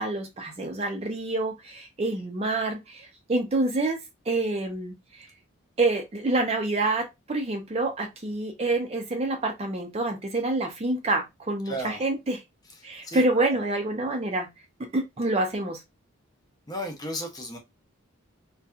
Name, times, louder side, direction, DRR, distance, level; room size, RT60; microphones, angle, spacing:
voice 1, 0.0-4.0 4.3-5.3 5.8-12.4 12.8-14.5 14.9-15.8, right 2 dB, 30° right, 0.4 m, -27 dB
voice 2, 11.7-12.0 13.0-13.6 16.7-17.6, equal, 20° left, 0.6 m, -34 dB
2.7 x 2.2 x 2.3 m
head